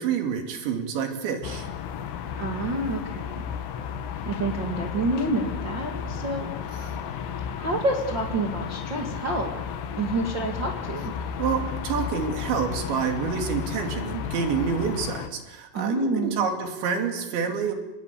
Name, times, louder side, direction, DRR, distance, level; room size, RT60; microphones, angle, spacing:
voice 1, 0.0-1.7 6.0-6.3 11.4-17.7, right 6 dB, 70° right, 4 dB, 4.8 m, -28 dB
sound 1, 1.4-15.3, left 7 dB, 85° left, 4.0 m, -33 dB
voice 2, 2.4-3.3 4.3-6.5 7.6-9.5 10.0-11.1 15.7-16.5, right 2 dB, 40° right, -1 dB, 1.8 m, -28 dB
25.5 x 20.0 x 8.3 m, 1.0 s
omnidirectional pair, 5.5 m